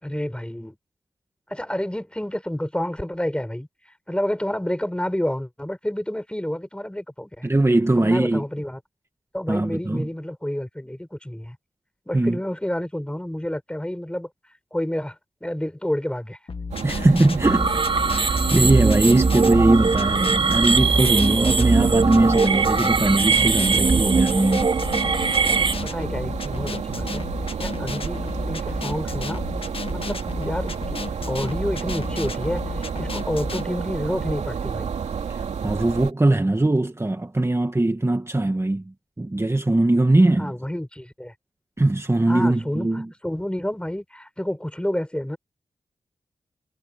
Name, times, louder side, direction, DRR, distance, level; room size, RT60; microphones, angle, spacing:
voice 1, 0.0-0.8 1.5-3.7 4.1-7.5 8.0-8.8 9.3-11.6 12.1-14.3 14.7-16.4 25.5-27.2 27.6-29.4 29.9-34.9 40.4-41.3 42.3-45.4, left 1 dB, 10° left, 5.4 m, -29 dB
voice 2, 7.4-8.4 9.5-10.1 12.1-12.4 16.8-17.8 18.1-24.7 35.6-38.8 39.2-40.5 41.8-43.1, right 2 dB, 25° right, 2.0 m, -20 dB
sound 1, 16.5-33.6, left 4 dB, 55° left, 1.6 m, -33 dB
sound 2, 16.7-36.1, right 6 dB, 80° right, 2.8 m, -31 dB
sound 3, 17.4-25.7, right 4 dB, 45° right, 1.3 m, -21 dB
cardioid pair, 40°, 11 cm